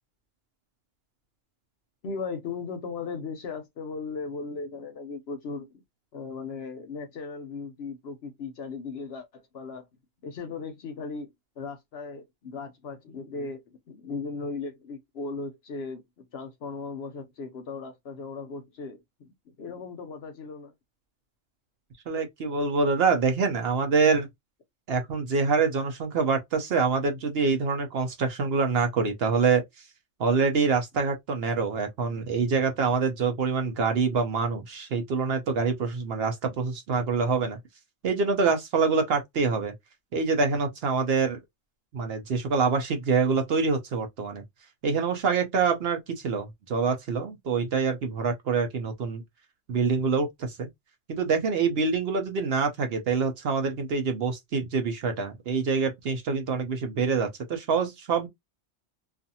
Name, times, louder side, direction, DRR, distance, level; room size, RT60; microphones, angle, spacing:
voice 1, 2.0-5.8 6.1-9.9 10.2-16.0 16.3-20.7, left 4 dB, 60° left, 0.8 m, -37 dB
voice 2, 22.1-24.3 24.9-29.6 30.2-37.6 38.0-39.7 40.1-41.4 41.9-44.4 44.8-49.2 49.7-50.7 51.1-58.3, right 5 dB, 60° right, 0.8 m, -25 dB
2.4 x 2.4 x 2.7 m
omnidirectional pair, 1.3 m